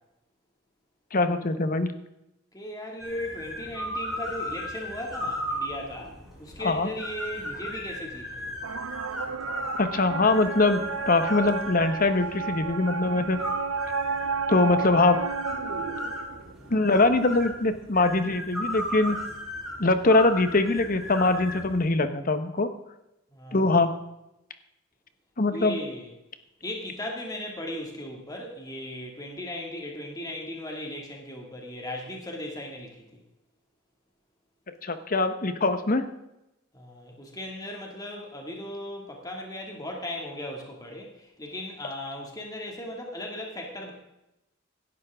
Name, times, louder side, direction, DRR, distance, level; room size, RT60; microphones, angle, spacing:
voice 1, 1.1-1.9 6.6-6.9 9.8-13.4 14.5-15.2 16.7-19.2 19.8-22.7 23.5-23.9 25.4-25.8 34.8-36.1, left 2 dB, 45° left, 10 dB, 1.1 m, -23 dB
voice 2, 2.5-6.1 6.4-8.5 23.3-23.9 25.5-26.1 26.6-33.2 36.7-43.9, left 1 dB, 20° left, 0 dB, 2.3 m, -37 dB
sound 1, 3.0-21.9, equal, ahead, 4.8 m, -36 dB
sound 2, 8.6-16.8, right 5 dB, 80° right, 0.7 m, -32 dB
17.0 x 12.0 x 3.7 m, 0.90 s
head